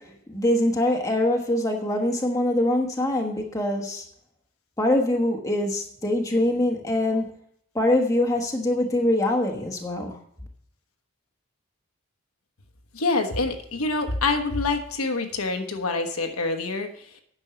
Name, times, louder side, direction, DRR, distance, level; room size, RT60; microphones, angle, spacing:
voice 1, 0.3-4.0 4.8-7.2 7.7-10.2, left 1 dB, 15° left, 2 dB, 1.2 m, -23 dB
voice 2, 12.9-16.9, left 3 dB, 90° left, 6 dB, 1.2 m, -26 dB
9.7 x 6.3 x 6.9 m, 0.68 s
head